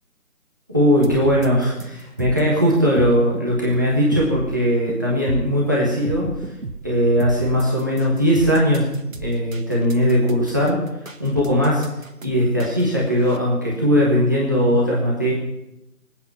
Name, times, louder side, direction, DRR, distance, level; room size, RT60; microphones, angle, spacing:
voice 1, 0.7-6.3 6.8-8.8 9.2-10.8 11.2-11.9 12.2-15.3, equal, 15° right, -5 dB, 1.4 m, -19 dB
sound 1, 1.0-13.4, right 3 dB, 55° right, 1.4 m, -33 dB
24.0 x 8.7 x 5.7 m, 0.88 s
figure-of-eight pair, 170°, 46 cm